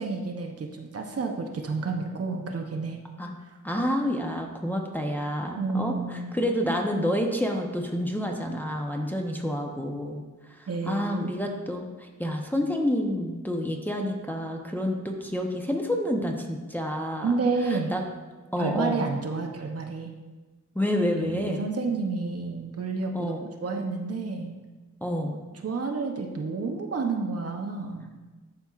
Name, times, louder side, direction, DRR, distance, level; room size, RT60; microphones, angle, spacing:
voice 1, 0.0-3.0 5.5-6.3 10.7-11.3 17.2-17.9 18.6-20.1 21.1-23.3 23.6-24.6 25.6-28.1, right 4 dB, 50° right, 3 dB, 0.8 m, -30 dB
voice 2, 3.6-10.2 10.6-17.4 17.7-18.0 18.5-19.0 20.7-21.6 23.1-23.4 25.0-25.4, equal, 5° left, 0 dB, 0.8 m, -29 dB
11.5 x 4.3 x 2.4 m, 1.2 s
cardioid pair, 80°, 31 cm